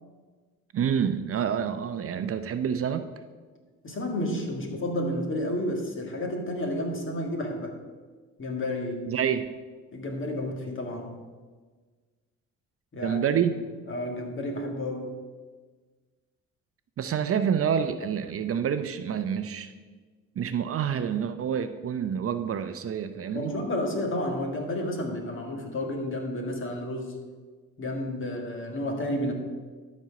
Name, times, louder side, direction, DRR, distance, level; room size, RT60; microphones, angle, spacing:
voice 1, 0.7-3.0 9.1-9.5 13.0-13.6 17.0-19.7 20.4-23.5, right 8 dB, 50° right, 10 dB, 0.6 m, -27 dB
voice 2, 3.8-7.7 8.4-9.1 9.9-11.2 12.9-13.2 13.9-15.2 23.3-27.2 27.8-29.3, left 1 dB, 40° left, 2 dB, 1.8 m, -31 dB
12.0 x 4.4 x 5.9 m, 1.4 s
cardioid pair, 90°, 30 cm